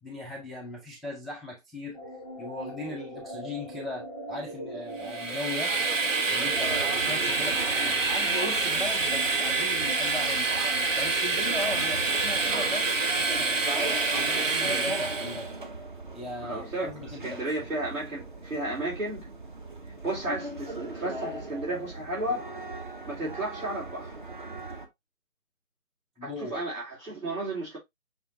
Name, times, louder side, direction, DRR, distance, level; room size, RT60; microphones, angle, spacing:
voice 1, 0.0-2.0 2.4-5.7 6.3-10.5 11.0-13.6 14.1-15.5 16.1-17.7 26.2-26.6, left 2 dB, ahead, 0.4 m, -38 dB
sound 1, 1.9-14.4, right 1 dB, 15° right, 1.6 m, -40 dB
Train, 5.0-15.5, right 4 dB, 65° right, 0.9 m, -27 dB
sound 2, 6.4-24.9, right 2 dB, 35° right, 0.7 m, -39 dB
voice 2, 16.4-16.9 17.2-19.3 20.0-22.5 23.1-24.1 26.2-27.8, right 2 dB, 80° right, 3.2 m, -33 dB
5.6 x 3.6 x 2.5 m
figure-of-eight pair, 150°, 41 cm